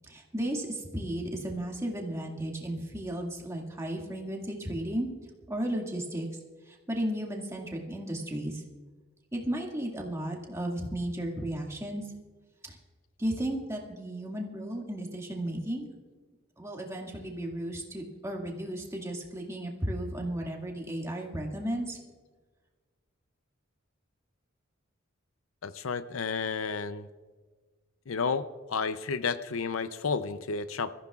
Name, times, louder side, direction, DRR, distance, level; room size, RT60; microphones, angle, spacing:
voice 1, 0.1-5.1 5.5-6.3 6.7-8.6 9.3-12.0 12.6-12.8 13.2-15.9 16.6-22.0, right 1 dB, 15° right, 0 dB, 2.0 m, -34 dB
voice 2, 25.6-27.1 28.1-30.9, left 5 dB, 80° left, 13 dB, 0.6 m, -31 dB
24.0 x 14.5 x 2.4 m, 1.4 s
head